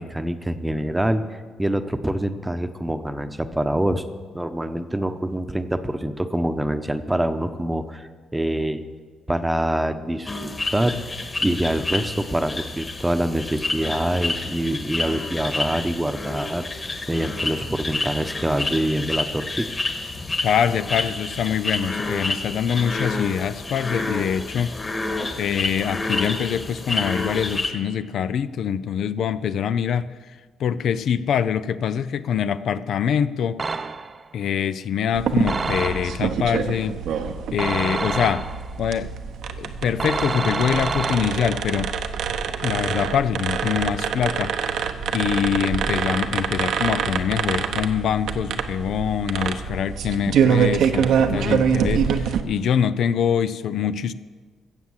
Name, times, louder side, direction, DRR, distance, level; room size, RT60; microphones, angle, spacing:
voice 1, 0.0-4.0 4.3-8.8 9.3-11.0 11.4-16.7 17.1-19.7, right 1 dB, 10° right, 9 dB, 0.9 m, -25 dB
sound 1, 10.3-27.7, left 2 dB, 30° left, 1.6 m, -29 dB
voice 2, 20.4-24.7 25.4-33.6 34.3-37.0 37.5-38.5 38.8-39.1 39.6-41.9 42.6-44.8 45.1-54.1, left 8 dB, 70° left, 13 dB, 0.4 m, -24 dB
sound 2, 33.6-34.3 35.5-36.4 37.6-38.8 40.0-41.7, right 4 dB, 35° right, 0.6 m, -28 dB
sound 3, 35.1-52.4, right 7 dB, 75° right, 0.9 m, -25 dB
15.5 x 7.4 x 7.3 m, 1.5 s
cardioid pair, 90°, 0 cm